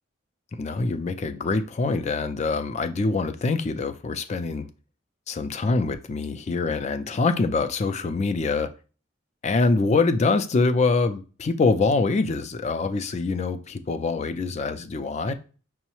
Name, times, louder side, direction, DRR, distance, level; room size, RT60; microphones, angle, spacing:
voice 1, 0.5-4.7 5.3-8.7 9.4-15.3, left 3 dB, 35° left, 0.3 m, -24 dB
5.4 x 2.1 x 2.9 m
head